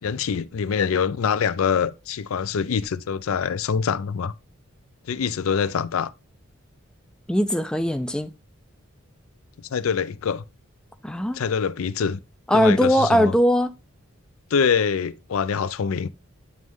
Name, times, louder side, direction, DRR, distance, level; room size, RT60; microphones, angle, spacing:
voice 1, 0.0-4.3 5.1-6.1 9.7-10.4 11.3-12.2 12.5-13.3 14.5-16.1, left 6 dB, 80° left, 0.4 m, -24 dB
voice 2, 7.3-8.3 11.0-11.4 12.5-13.7, equal, 5° left, 0.3 m, -20 dB
9.3 x 3.1 x 3.6 m
head